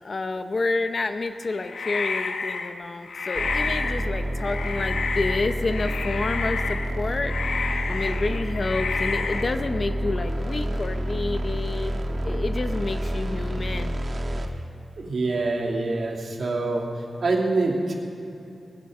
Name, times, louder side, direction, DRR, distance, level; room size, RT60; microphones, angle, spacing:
voice 1, 0.0-7.6 7.9-11.9 12.2-14.0, left 3 dB, 45° left, 8 dB, 0.7 m, -29 dB
sound 1, 1.2-2.8 3.0-4.1 4.4-6.9 7.2-9.4, left 4 dB, 85° left, 1.0 m, -30 dB
sound 2, 3.3-14.5, equal, 45° right, 1.3 m, -29 dB
voice 2, 14.9-16.9 17.2-17.9, right 3 dB, 60° right, 0 dB, 2.6 m, -25 dB
20.0 x 10.5 x 6.6 m, 2.9 s
wide cardioid pair, 135°, 0 cm